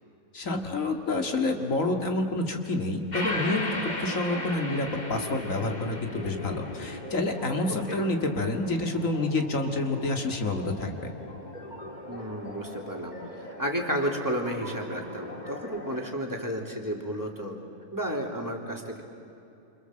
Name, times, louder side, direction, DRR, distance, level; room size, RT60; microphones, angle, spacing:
voice 1, 0.3-3.7 4.0-11.1, left 2 dB, 70° left, 4 dB, 2.5 m, -28 dB
sound 1, 3.1-16.1, left 1 dB, 30° left, 2.4 m, -38 dB
voice 2, 7.7-8.0 12.1-17.6 17.9-19.0, equal, 15° right, 1 dB, 3.2 m, -32 dB
28.5 x 26.5 x 7.8 m, 2.8 s
omnidirectional pair, 1.4 m